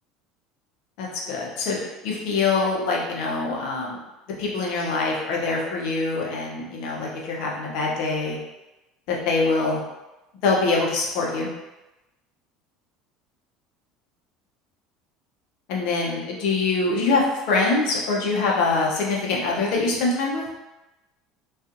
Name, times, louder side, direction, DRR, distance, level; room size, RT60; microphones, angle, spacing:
voice 1, 1.0-1.8 2.0-4.0 4.4-8.4 9.1-9.8 10.4-11.5 15.7-20.4, left 3 dB, 60° left, -2 dB, 0.6 m, -24 dB
2.5 x 2.4 x 2.5 m, 1.0 s
figure-of-eight pair, 70°, 0 cm